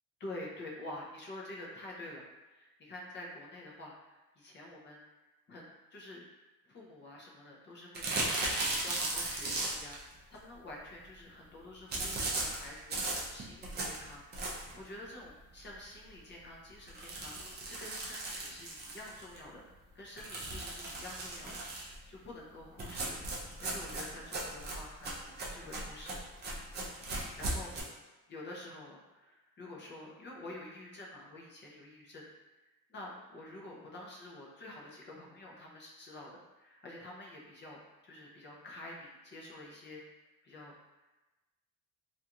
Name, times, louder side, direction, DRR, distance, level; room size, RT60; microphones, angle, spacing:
voice 1, 0.2-5.0 5.5-6.2 6.7-10.0 10.3-19.6 19.9-23.2 23.6-26.2 26.7-27.0 27.4-27.7 28.3-32.2 32.9-36.3 36.6-37.8 38.0-40.0 40.4-40.7, left 1 dB, 30° left, -3 dB, 0.5 m, -48 dB
sound 1, 7.9-10.0 11.9-14.8 15.3-15.4 15.7-15.8 16.1-16.2 16.9-19.4 20.2-22.0 22.8-27.8, right 2 dB, 30° right, 0.4 m, -37 dB
2.5 x 2.3 x 2.8 m, 1.1 s
cardioid pair, 150°, 37 cm